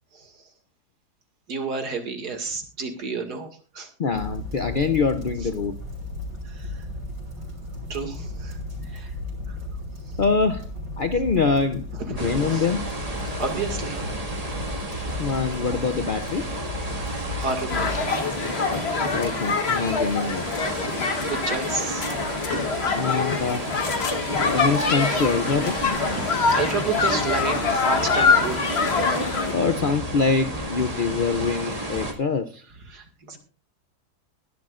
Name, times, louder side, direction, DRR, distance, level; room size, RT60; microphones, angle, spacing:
voice 1, 1.5-3.9 6.5-6.8 7.9-9.1 9.5-9.6 12.1-12.7 13.3-14.5 15.0-15.3 16.9-18.1 21.2-22.1 23.9-24.4 26.1-28.8 29.7-29.8 32.9-33.4, right 4 dB, 75° right, 2.6 m, -32 dB
voice 2, 4.0-5.8 10.2-10.7 11.0-12.9 15.2-16.5 19.1-20.7 22.9-23.7 24.4-25.8 29.5-32.6, left 4 dB, 60° left, 0.5 m, -24 dB
sound 1, 4.1-18.0, left 2 dB, 60° right, 5.1 m, -35 dB
sound 2, 12.2-32.1, right 1 dB, 25° right, 2.0 m, -32 dB
sound 3, 17.7-29.5, left 4 dB, 40° left, 1.4 m, -25 dB
21.0 x 12.0 x 2.5 m
omnidirectional pair, 1.7 m